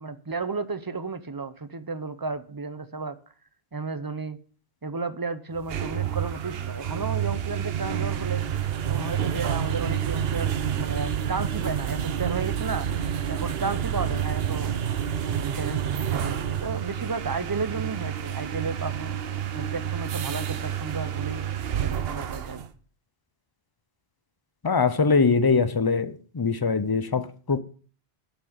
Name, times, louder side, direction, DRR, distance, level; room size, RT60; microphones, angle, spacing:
voice 1, 0.0-3.2 3.7-4.4 4.8-8.4 8.9-12.9 13.3-14.7 15.2-19.2 19.5-21.4 21.8-22.6, right 4 dB, 25° right, 0.6 m, -33 dB
sound 1, 5.5-22.7, right 9 dB, 70° right, 1.0 m, -29 dB
voice 2, 24.6-27.6, left 4 dB, 30° left, 0.5 m, -22 dB
8.5 x 6.2 x 6.6 m
omnidirectional pair, 1.0 m